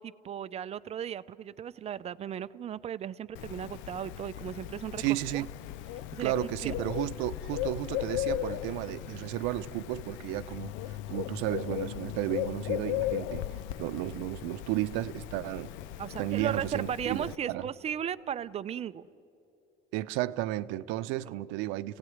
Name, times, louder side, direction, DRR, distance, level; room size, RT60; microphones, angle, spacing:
voice 1, 0.0-5.0 5.3-5.5 6.1-6.7 16.0-19.1 21.3-21.4, right 9 dB, 35° right, 15 dB, 0.6 m, -36 dB
Bird, 3.4-17.4, left 13 dB, 85° left, 0.6 m, -37 dB
voice 2, 5.0-5.5 6.2-13.4 13.8-15.7 16.2-17.7 19.9-22.0, right 16 dB, 90° right, 13 dB, 0.8 m, -33 dB
29.5 x 17.5 x 9.5 m, 2.9 s
cardioid pair, 130°, 19 cm